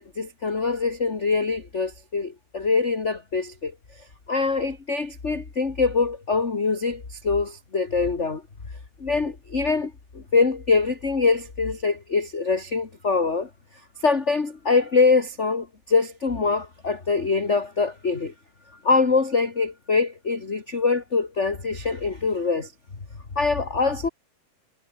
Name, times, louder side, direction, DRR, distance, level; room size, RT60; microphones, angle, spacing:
voice 1, 0.0-3.7 4.3-8.4 9.0-13.5 14.0-18.3 18.8-22.7 23.4-24.1, left 4 dB, 25° left, 2.1 m, -24 dB
omnidirectional pair, 3.7 m